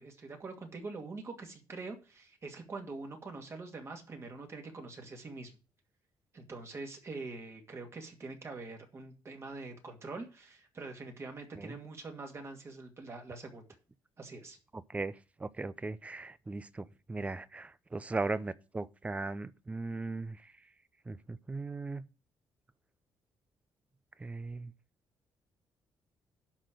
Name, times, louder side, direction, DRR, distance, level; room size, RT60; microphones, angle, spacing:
voice 1, 0.0-5.5 6.3-13.7 14.2-14.6, right 3 dB, 35° right, 2.3 m, -44 dB
voice 2, 14.7-20.5 21.1-22.0 24.2-24.7, right 3 dB, 15° right, 0.6 m, -38 dB
11.5 x 4.4 x 7.7 m
cardioid pair, 125°, 8 cm